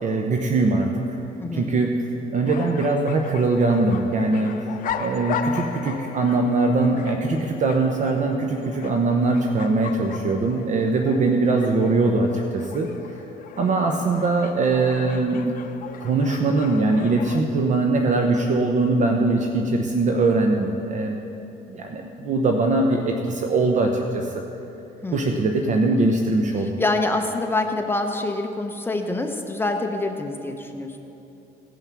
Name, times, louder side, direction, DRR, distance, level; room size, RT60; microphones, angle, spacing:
voice 1, 0.0-1.2 1.5-4.7 4.9-12.9 13.6-15.5 16.0-21.2 21.7-24.3 25.1-26.7, right 3 dB, 45° right, 2 dB, 0.9 m, -21 dB
voice 2, 1.4-1.7 25.0-25.4 26.6-31.0, left 2 dB, 15° left, 4 dB, 0.8 m, -26 dB
sound 1, 2.5-17.4, left 7 dB, 55° left, 0.7 m, -37 dB
17.0 x 5.7 x 6.1 m, 2.9 s
cardioid pair, 110°, 17 cm